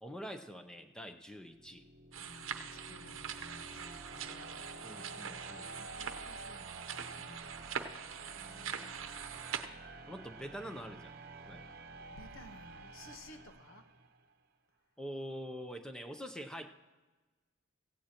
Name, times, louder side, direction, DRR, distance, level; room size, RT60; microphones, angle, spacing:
voice 1, 0.0-1.8 4.8-5.7 10.1-11.1 11.5-11.6 15.0-16.7, equal, 5° left, 7 dB, 0.6 m, -45 dB
sound 1, 1.4-14.2, right 2 dB, 50° right, 0.9 m, -50 dB
sound 2, 2.1-9.7, right 7 dB, 85° right, 0.8 m, -43 dB
voice 2, 2.2-4.7 5.5-9.5 12.1-13.8, left 2 dB, 85° left, 7 dB, 1.2 m, -57 dB
16.5 x 16.0 x 2.9 m, 1.3 s
head